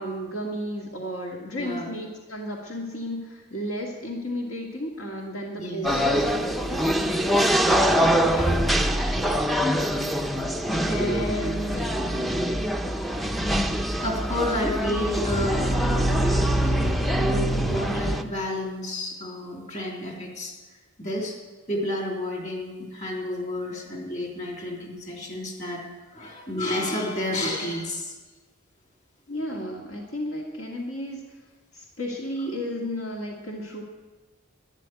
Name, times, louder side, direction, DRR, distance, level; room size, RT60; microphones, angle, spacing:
voice 1, 0.0-7.2 29.3-31.2 31.7-33.8, equal, 65° left, -1 dB, 2.1 m, -33 dB
voice 2, 1.5-1.9 5.6-6.2 7.9-8.8 10.8-11.9 14.0-20.5 21.0-21.3 21.7-28.1, left 1 dB, 35° left, 0 dB, 3.4 m, -31 dB
sound 1, 5.8-18.2, equal, ahead, 0.6 m, -24 dB
12.5 x 11.0 x 9.4 m, 1.2 s
head